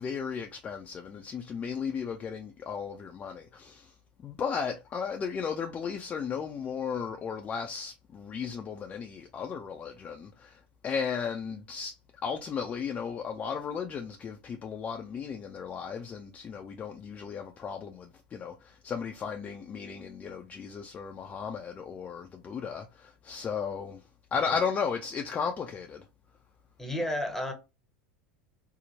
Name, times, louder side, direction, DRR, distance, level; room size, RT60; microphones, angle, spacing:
voice 1, 0.0-3.9 4.2-11.9 12.2-24.0 24.3-26.1, left 6 dB, 30° left, 0.4 m, -35 dB
voice 2, 26.8-27.5, left 1 dB, 5° left, 0.8 m, -31 dB
2.8 x 2.0 x 2.7 m
hypercardioid pair, 80°, 5 cm